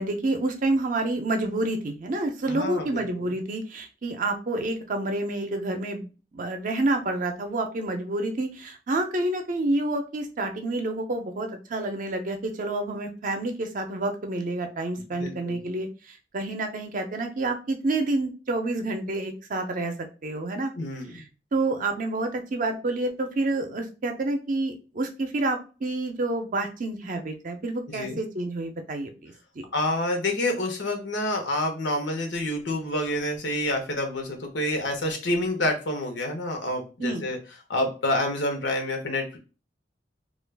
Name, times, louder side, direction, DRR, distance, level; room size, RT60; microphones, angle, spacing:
voice 1, 0.0-6.1 6.3-19.9 20.2-20.7 21.1-21.2 21.5-29.6 37.0-37.2, right 2 dB, 45° right, 6 dB, 0.5 m, -28 dB
voice 2, 2.5-3.3 15.1-15.6 20.8-21.2 27.9-28.2 29.7-37.4 37.7-39.4, left 1 dB, 90° left, 3 dB, 0.8 m, -28 dB
2.3 x 2.3 x 3.3 m, 0.33 s
head